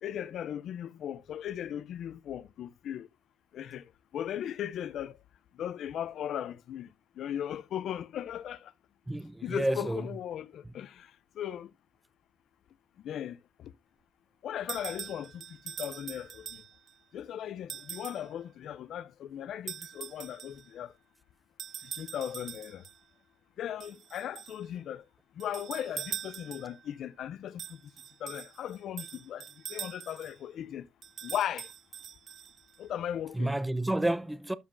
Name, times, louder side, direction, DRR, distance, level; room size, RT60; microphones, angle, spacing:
voice 1, 0.0-3.1 3.5-5.2 5.6-6.9 7.2-8.7 9.4-11.1 11.4-11.7 13.0-13.7 14.4-16.6 17.1-20.9 22.0-22.8 23.6-25.0 25.4-27.8 28.2-29.4 29.7-30.9 31.2-31.7 32.8-33.5, left 10 dB, 70° left, 0.4 m, -37 dB
voice 2, 9.1-10.1 10.6-10.7 33.3-34.5, right 1 dB, 10° right, 0.6 m, -30 dB
sound 1, 14.7-16.9 17.7-18.3 19.7-20.7 21.6-23.0 23.8-24.6 25.4-26.8 27.6-30.4 31.0-32.8, right 9 dB, 60° right, 0.5 m, -43 dB
12.0 x 5.1 x 2.5 m
cardioid pair, 90°, 0 cm